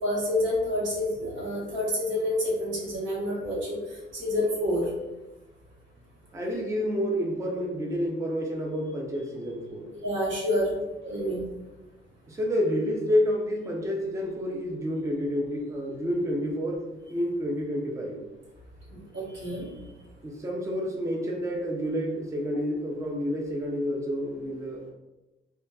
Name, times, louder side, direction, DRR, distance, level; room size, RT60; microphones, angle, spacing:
voice 1, 0.0-4.9 10.0-11.4 18.9-19.7, left 1 dB, 75° right, -4 dB, 1.0 m, -28 dB
voice 2, 6.3-9.9 12.3-16.8 17.1-18.2 20.2-24.9, equal, 15° right, 0 dB, 0.4 m, -29 dB
2.7 x 2.2 x 2.2 m, 1.0 s
cardioid pair, 90°, 20 cm